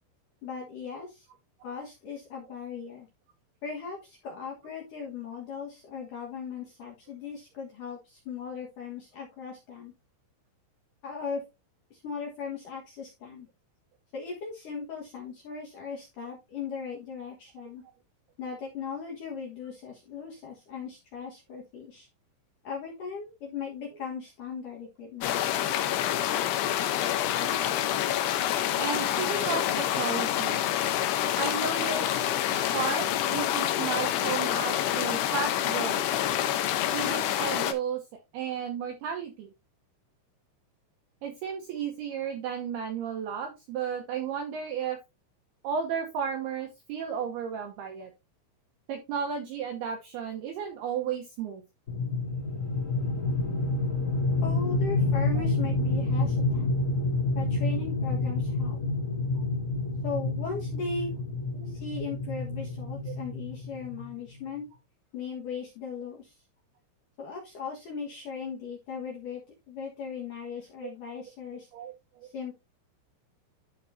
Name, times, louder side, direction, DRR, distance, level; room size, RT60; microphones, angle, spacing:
voice 1, 0.4-1.3 1.6-3.1 3.6-9.9 11.0-11.4 11.9-13.5 14.1-17.8 18.4-22.1 22.6-25.4 54.4-56.7 57.3-58.8 60.0-61.1 61.7-64.6 65.1-66.3 67.2-69.4 69.7-71.7 72.2-72.5, left 5 dB, 60° left, -1 dB, 2.2 m, -38 dB
sound 1, 25.2-37.7, left 11 dB, 80° left, 2.4 m, -27 dB
voice 2, 28.8-30.6 31.4-32.2 32.7-36.0 36.9-39.5 41.2-45.0 45.6-48.1 48.9-51.6 61.6-61.8 71.1-71.2 71.7-71.9, right 7 dB, 75° right, 3 dB, 2.3 m, -33 dB
sound 2, 51.9-64.1, left 2 dB, 20° left, 2.4 m, -28 dB
12.5 x 4.6 x 2.7 m, 0.24 s
omnidirectional pair, 5.8 m